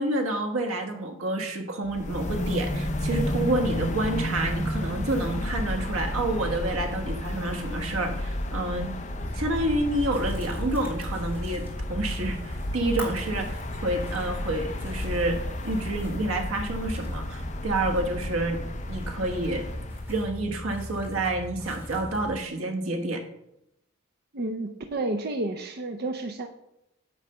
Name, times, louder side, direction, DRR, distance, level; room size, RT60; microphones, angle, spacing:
voice 1, 0.0-8.9 9.3-18.6 18.9-19.6 20.1-23.2, right 2 dB, 90° right, 4 dB, 1.3 m, -29 dB
sound 1, 1.9-20.2, left 1 dB, 35° left, 0.7 m, -32 dB
sound 2, 9.1-22.4, left 1 dB, 10° right, 2.1 m, -39 dB
voice 2, 24.3-26.5, right 2 dB, 50° right, 4 dB, 0.6 m, -31 dB
9.3 x 3.3 x 6.6 m, 0.83 s
head